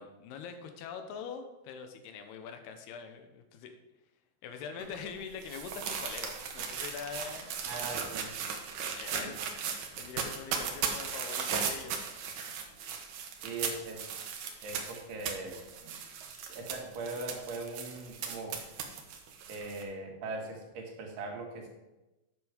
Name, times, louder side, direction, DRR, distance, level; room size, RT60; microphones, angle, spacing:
voice 1, 0.0-3.8 4.4-7.5 8.7-9.4 10.0-12.0, left 6 dB, 90° left, 7 dB, 2.9 m, -43 dB
sound 1, 4.8-19.8, right 6 dB, 70° right, 2.1 m, -37 dB
voice 2, 7.7-8.3 9.1-9.3 13.4-15.6 16.5-18.6 19.5-21.7, right 3 dB, 85° right, 1 dB, 3.7 m, -40 dB
9.4 x 7.0 x 5.0 m, 1.0 s
omnidirectional pair, 4.6 m